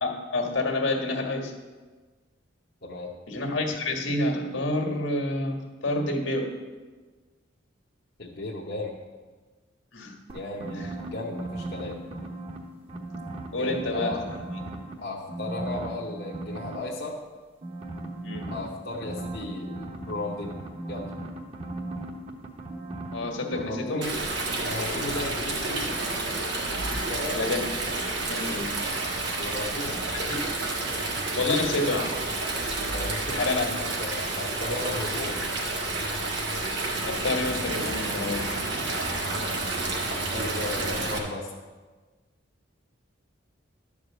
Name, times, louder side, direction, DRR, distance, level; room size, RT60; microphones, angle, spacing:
voice 1, 0.0-1.5 3.3-5.6 5.8-6.5 9.9-10.1 10.8-10.9 13.5-14.1 14.8-14.9 18.2-18.5 23.1-24.0 27.4-27.6 28.3-28.7 30.1-30.4 31.4-32.1 33.3-33.8 37.0-38.8, left 2 dB, 80° left, 1 dB, 1.7 m, -28 dB
voice 2, 2.8-3.1 8.2-9.0 10.3-10.9 11.1-12.0 13.6-14.2 15.0-17.2 18.5-20.6 20.9-21.1 23.5-24.2 24.6-26.0 26.9-27.4 29.4-30.1 32.9-33.4 33.8-35.4 40.1-41.5, left 2 dB, 55° left, -3 dB, 1.0 m, -35 dB
sound 1, 10.3-12.6 12.9-14.9 15.3-16.8 17.6-23.3 23.5-23.7, right 2 dB, 30° right, 1.1 m, -36 dB
Stream, 24.0-41.2, right 2 dB, 60° right, 1.8 m, -30 dB
12.0 x 4.8 x 7.6 m, 1.4 s
head